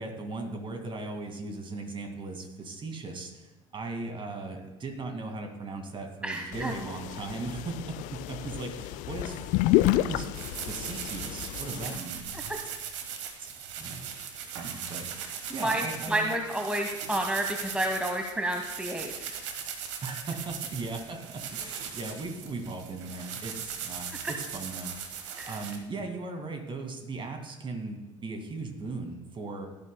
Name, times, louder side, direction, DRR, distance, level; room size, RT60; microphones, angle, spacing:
voice 1, 0.0-9.4 10.0-10.3 10.6-12.5 13.4-14.1 14.4-16.3 20.0-25.1 25.5-29.7, right 3 dB, 30° right, 5 dB, 2.0 m, -38 dB
voice 2, 6.2-6.7 12.5-12.6 15.6-19.3 25.4-25.5, right 1 dB, 5° right, 3 dB, 1.0 m, -30 dB
sound 1, 6.5-12.0, left 16 dB, 55° left, 0.5 m, -30 dB
sound 2, 10.3-25.8, right 7 dB, 70° right, 1.3 m, -39 dB
17.0 x 11.0 x 2.2 m, 1.1 s
figure-of-eight pair, 65°, 16 cm